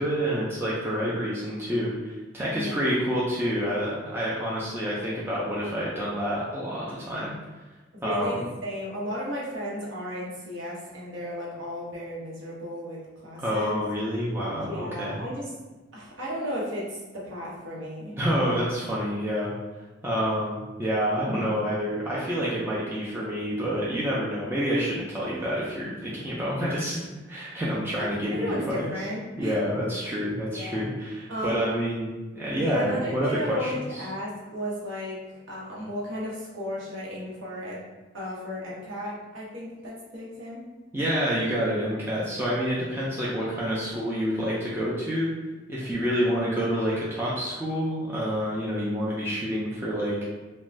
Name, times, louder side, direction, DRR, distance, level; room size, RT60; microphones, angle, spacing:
voice 1, 0.0-7.3 8.0-8.3 13.4-15.2 18.2-19.5 20.0-27.0 27.3-28.9 29.4-32.1 32.3-34.0 40.9-45.3 45.7-50.2, equal, 10° right, -7 dB, 0.3 m, -28 dB
voice 2, 7.9-13.7 14.6-15.5 15.9-18.1 27.9-29.6 30.5-30.8 31.3-31.8 32.6-37.8 38.1-40.6, equal, 85° right, -5 dB, 0.9 m, -34 dB
2.5 x 2.2 x 3.1 m, 1.2 s
head